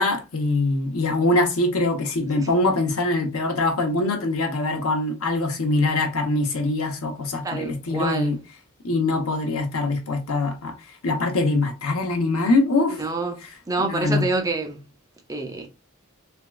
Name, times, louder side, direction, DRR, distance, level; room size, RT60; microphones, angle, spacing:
voice 1, 0.0-8.4 8.8-10.7 11.0-13.0 13.8-14.2, left 2 dB, 70° left, 0.8 m, -23 dB
voice 2, 7.4-8.3 13.0-13.4 13.7-14.8 15.3-15.7, right 3 dB, 15° right, 0.4 m, -27 dB
3.4 x 2.2 x 2.3 m
head